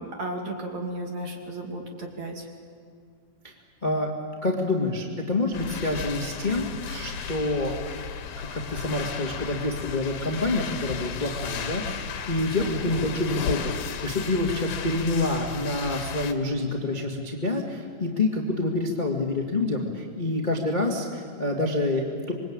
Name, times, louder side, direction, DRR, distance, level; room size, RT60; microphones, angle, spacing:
voice 1, 0.0-2.5 12.6-12.7, right 2 dB, 45° right, 1 dB, 3.5 m, -34 dB
voice 2, 4.4-7.7 8.4-13.7 14.0-22.3, left 2 dB, 20° left, 0 dB, 1.3 m, -27 dB
sound 1, 5.5-16.3, left 6 dB, 65° left, 2.9 m, -34 dB
26.5 x 23.0 x 9.0 m, 2.1 s
omnidirectional pair, 5.0 m